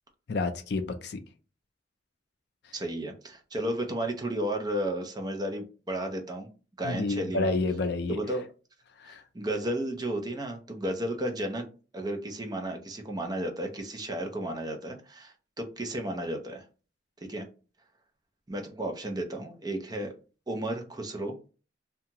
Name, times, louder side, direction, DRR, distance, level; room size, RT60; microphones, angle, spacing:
voice 1, 0.3-1.2 6.8-8.2 9.0-9.2, left 3 dB, 65° left, 0.4 m, -29 dB
voice 2, 2.7-6.5 6.8-7.6 8.1-8.4 9.0-11.7 11.9-16.6 17.3-17.5 18.5-20.1 20.5-21.3, right 1 dB, 20° right, 0.5 m, -33 dB
2.8 x 2.3 x 2.8 m
head